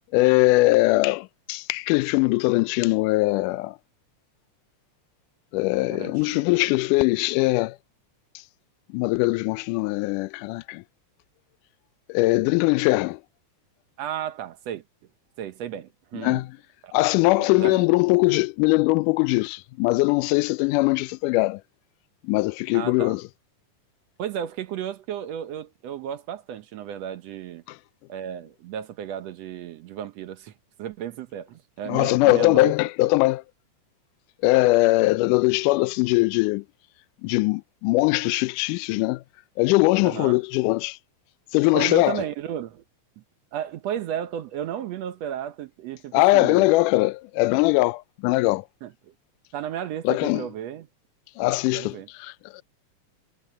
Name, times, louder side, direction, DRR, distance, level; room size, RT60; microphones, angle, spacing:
voice 1, 0.1-3.8 5.5-7.8 8.9-10.8 12.1-13.2 16.2-16.5 16.9-21.6 22.2-23.2 31.9-33.4 34.4-36.6 37.2-39.2 39.6-41.0 41.5-42.2 46.1-48.6 50.0-50.4 51.4-52.6, left 21 dB, 85° left, 2.1 m, -21 dB
voice 2, 5.9-6.4 14.0-14.8 15.4-16.4 16.8-16.9 17.4-17.8 22.7-23.2 24.2-27.6 28.1-30.5 30.8-32.7 40.0-40.4 41.7-42.8 43.5-46.7 48.8-48.9 49.5-50.9 51.5-52.1, right 10 dB, 70° right, 1.8 m, -33 dB
omnidirectional pair, 3.6 m